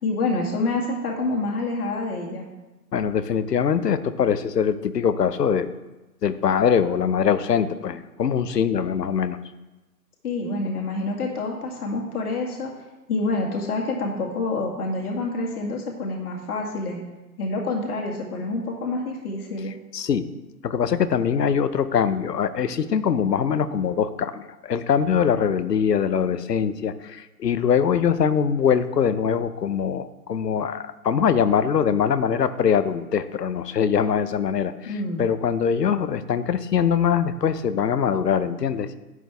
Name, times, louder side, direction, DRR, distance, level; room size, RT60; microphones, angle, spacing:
voice 1, 0.0-2.4 10.2-12.7 13.1-17.0 17.4-19.7 34.9-35.2, left 2 dB, 65° left, -1 dB, 2.1 m, -27 dB
voice 2, 2.9-5.7 6.2-9.4 19.9-20.3 20.6-34.9 35.2-39.0, left 7 dB, 85° left, 13 dB, 0.9 m, -22 dB
11.0 x 9.0 x 3.5 m, 1.1 s
hypercardioid pair, 140°, 47 cm